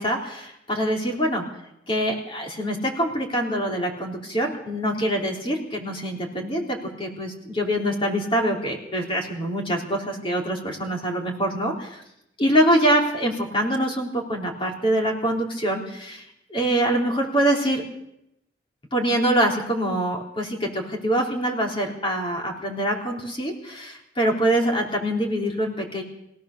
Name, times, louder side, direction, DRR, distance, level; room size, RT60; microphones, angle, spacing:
voice 1, 0.0-1.4 1.9-12.0 12.4-16.2 16.5-17.8 18.9-26.0, right 1 dB, 30° left, 1 dB, 3.7 m, -24 dB
23.5 x 17.0 x 6.8 m, 0.82 s
head